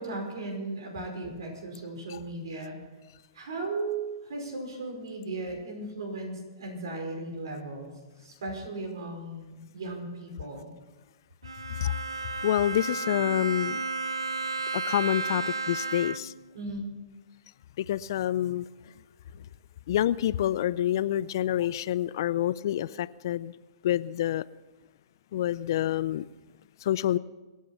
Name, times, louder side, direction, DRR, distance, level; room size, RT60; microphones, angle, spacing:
voice 1, 0.0-2.8 3.3-7.9 8.2-10.7 16.5-16.9, right 2 dB, 70° right, 5.3 m, -36 dB
Bowed string instrument, 11.4-16.5, right 3 dB, 90° right, 0.5 m, -33 dB
voice 2, 12.4-13.8 14.7-16.3 17.8-18.7 19.9-23.5 23.8-24.4 25.3-26.3 26.8-27.2, left 12 dB, 60° left, 0.5 m, -27 dB
24.5 x 8.5 x 5.9 m
hypercardioid pair, 115°, 2 cm